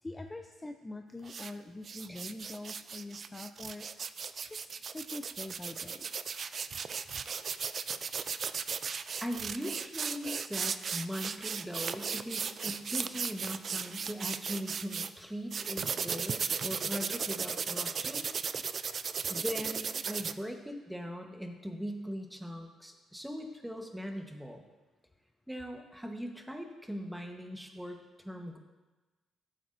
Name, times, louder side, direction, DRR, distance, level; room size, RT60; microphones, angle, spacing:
voice 1, 0.0-3.9 4.4-6.1, left 2 dB, 20° left, 5 dB, 0.5 m, -44 dB
sound 1, 1.2-1.5 1.8-15.1 15.5-20.3, right 6 dB, 50° right, 0.3 m, -36 dB
voice 2, 9.2-18.3 19.3-24.6 25.5-28.0 28.2-28.6, equal, 5° right, 3 dB, 1.1 m, -40 dB
13.5 x 7.8 x 2.6 m, 1.2 s
cardioid pair, 90°, 0 cm